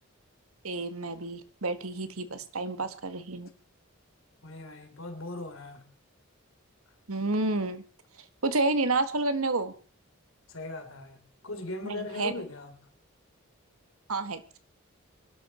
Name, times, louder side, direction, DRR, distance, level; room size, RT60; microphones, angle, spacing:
voice 1, 0.6-3.5 7.1-7.8 8.4-9.7 11.8-12.3 14.1-14.6, right 2 dB, 80° right, 1.6 m, -30 dB
voice 2, 4.4-5.8 10.5-12.8, left 2 dB, 65° left, 3.5 m, -39 dB
23.5 x 12.0 x 4.4 m
head